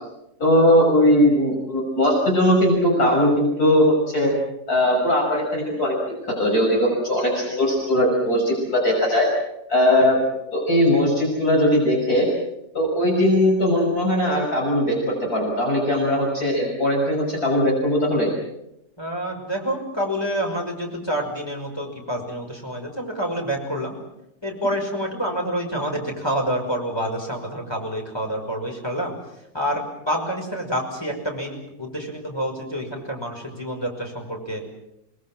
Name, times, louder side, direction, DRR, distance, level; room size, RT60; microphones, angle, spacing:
voice 1, 0.4-4.3 4.7-6.0 6.3-9.3 9.7-12.3 12.7-18.3, left 1 dB, 60° left, -1 dB, 6.6 m, -19 dB
voice 2, 19.0-24.0 24.4-29.1 29.5-34.7, equal, 15° left, 1 dB, 5.9 m, -28 dB
28.0 x 21.0 x 7.6 m, 0.85 s
omnidirectional pair, 1.8 m